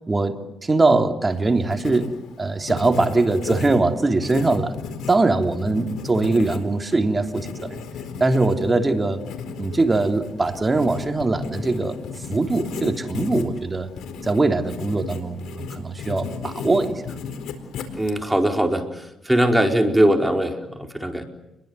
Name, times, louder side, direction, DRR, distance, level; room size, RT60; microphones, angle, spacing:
voice 1, 0.1-4.7 5.1-7.8 8.2-9.3 9.6-12.0 12.3-13.9 14.2-17.0, right 3 dB, 20° right, 6 dB, 3.2 m, -22 dB
Writing, 1.3-18.5, left 6 dB, 80° left, 4.4 m, -35 dB
voice 2, 17.9-18.8 19.2-21.2, right 1 dB, 5° right, 4 dB, 4.8 m, -20 dB
29.0 x 23.0 x 8.2 m, 0.88 s
cardioid pair, 90°, 0 cm